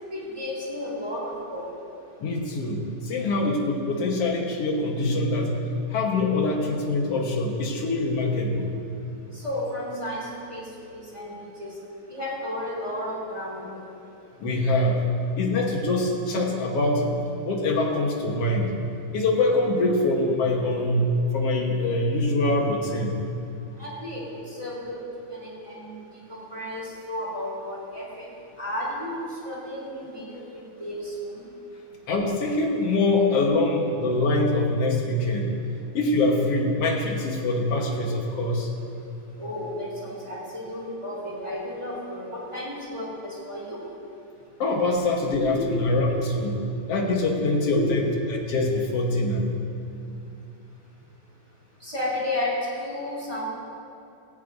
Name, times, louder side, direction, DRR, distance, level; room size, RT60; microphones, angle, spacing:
voice 1, 0.1-1.6 9.3-10.6 10.9-11.7 12.1-13.8 23.8-26.0 26.3-28.3 28.6-31.4 39.4-43.8 45.5-45.8 46.2-46.3 47.7-47.9 51.8-53.5, left 1 dB, 10° right, -6 dB, 3.2 m, -33 dB
voice 2, 2.2-5.6 5.9-8.7 14.4-15.0 15.4-17.0 17.5-18.8 19.1-23.2 32.1-35.5 35.9-38.7 44.6-46.6 46.9-48.0 48.3-49.5, left 2 dB, 60° left, 0 dB, 1.8 m, -24 dB
18.0 x 16.5 x 2.7 m, 2.7 s
omnidirectional pair, 4.0 m